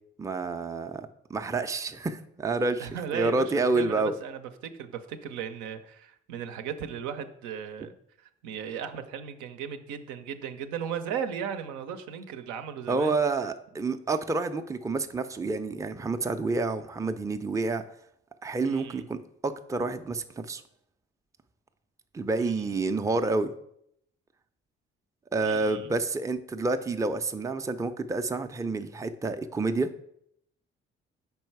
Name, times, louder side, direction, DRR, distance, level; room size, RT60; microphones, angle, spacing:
voice 1, 0.2-4.1 12.9-17.8 18.4-19.2 19.4-20.6 22.1-23.5 25.3-29.9, right 3 dB, 10° right, 8 dB, 0.5 m, -29 dB
voice 2, 2.8-13.2 18.6-19.1 22.4-22.8 25.4-25.9, right 8 dB, 70° right, 8 dB, 0.6 m, -36 dB
5.4 x 4.5 x 4.6 m, 0.73 s
hypercardioid pair, 45°, 31 cm